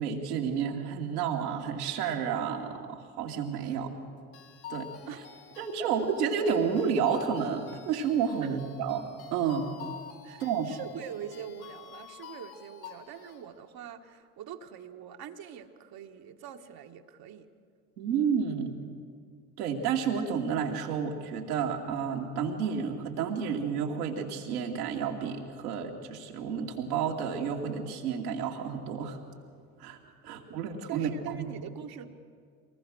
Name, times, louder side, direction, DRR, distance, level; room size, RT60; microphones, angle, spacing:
voice 1, 0.0-3.9 4.7-4.9 5.6-9.7 10.4-10.7 18.0-18.8 19.6-29.2 29.8-30.0 30.2-31.5, right 7 dB, 80° right, 1 dB, 2.6 m, -30 dB
sound 1, 4.3-13.4, left 8 dB, 55° left, 2.6 m, -48 dB
voice 2, 10.2-17.5 30.5-30.6 30.9-32.1, right 8 dB, 50° right, 4 dB, 1.7 m, -43 dB
24.0 x 19.5 x 6.4 m, 2.1 s
hypercardioid pair, 60°, 45 cm